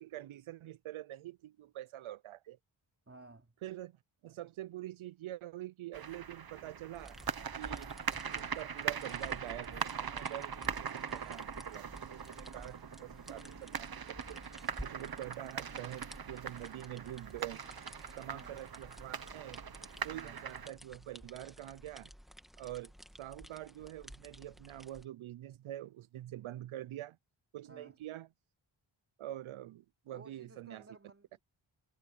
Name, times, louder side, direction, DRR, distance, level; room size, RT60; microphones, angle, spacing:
voice 1, 0.0-2.6 3.6-4.0 4.2-7.2 7.5-7.9 8.2-14.5 14.8-17.6 18.2-19.6 20.0-22.1 22.6-22.9 23.2-27.2 27.5-28.3 29.2-30.8, right 14 dB, 80° right, 0.5 m, -45 dB
voice 2, 3.1-3.5 18.3-18.6 20.1-20.5 27.6-28.0 30.1-31.4, right 2 dB, 30° right, 3.2 m, -56 dB
Massive echo inside a ticket hall in Ploče Croatia, 5.9-20.7, right 7 dB, 50° right, 1.0 m, -41 dB
sound 1, 6.9-25.0, equal, ahead, 1.5 m, -53 dB
wide cardioid pair, 120°, 48 cm